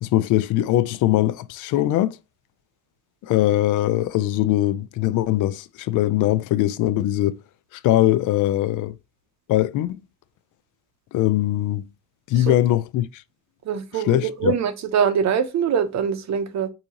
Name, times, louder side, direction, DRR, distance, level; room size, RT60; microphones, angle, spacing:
voice 1, 0.0-2.2 3.2-7.4 7.8-9.0 9.5-10.0 11.1-11.9 12.3-13.2 14.1-14.6, left 14 dB, 85° left, 0.5 m, -21 dB
voice 2, 13.6-16.7, right 7 dB, 65° right, 0.9 m, -23 dB
4.8 x 2.8 x 3.8 m
cardioid pair, 90°, 30 cm